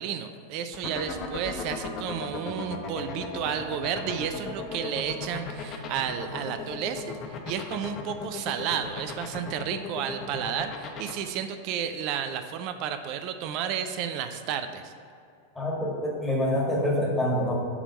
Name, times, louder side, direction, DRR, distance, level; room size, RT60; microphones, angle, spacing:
voice 1, 0.0-14.9, right 8 dB, 40° right, 9 dB, 0.4 m, -32 dB
sound 1, 0.7-11.1, left 6 dB, 35° left, 0.7 m, -35 dB
voice 2, 15.5-17.6, left 1 dB, 10° left, -4 dB, 1.6 m, -26 dB
7.1 x 3.4 x 5.5 m, 2.5 s
figure-of-eight pair, 90°, 0 cm